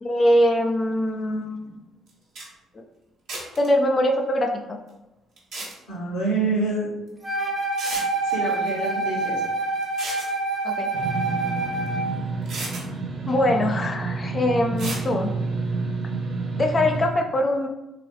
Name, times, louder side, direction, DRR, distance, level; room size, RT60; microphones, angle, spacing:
voice 1, 0.0-1.7 3.6-4.5 10.6-10.9 13.3-15.3 16.5-17.7, left 1 dB, 35° left, 3 dB, 0.5 m, -22 dB
sound 1, 2.1-2.2 2.4-2.5 3.3-3.7 5.4-5.7 7.1-7.2 7.8-8.1 9.8-10.3 11.9-12.0 12.5-12.8 14.8-15.0, right 3 dB, 60° right, 1.3 m, -33 dB
voice 2, 5.9-6.9 8.2-9.4, right 3 dB, 75° left, -9 dB, 1.4 m, -26 dB
Wind instrument woodwind instrument, 7.2-12.1, right 3 dB, 15° right, 1.0 m, -26 dB
sound 2, 10.9-17.1, right 4 dB, 40° right, 0.7 m, -29 dB
3.9 x 3.7 x 3.1 m, 0.96 s
figure-of-eight pair, 45°, 0 cm